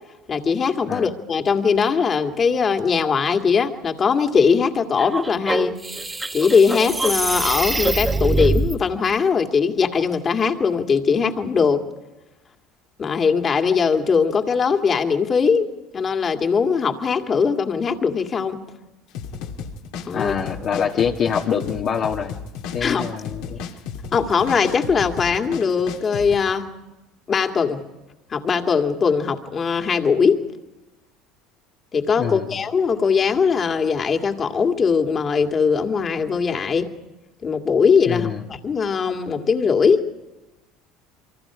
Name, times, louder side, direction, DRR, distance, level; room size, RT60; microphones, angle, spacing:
voice 1, 0.3-5.8 6.3-11.8 13.0-15.7 15.9-18.6 20.0-20.3 22.8-23.1 24.1-26.7 27.3-27.8 28.3-30.4 31.9-36.9 37.4-40.0, left 5 dB, 35° left, 5 dB, 2.2 m, -20 dB
sound 1, 5.0-8.7, right 2 dB, 15° right, 1.2 m, -24 dB
sound 2, 19.1-26.4, left 6 dB, 75° left, 2.2 m, -33 dB
voice 2, 20.1-22.3 22.7-23.6 32.2-32.5 38.1-38.4, left 7 dB, 50° left, -1 dB, 1.5 m, -25 dB
28.5 x 24.0 x 5.0 m, 1.0 s
supercardioid pair, 95°, 0 cm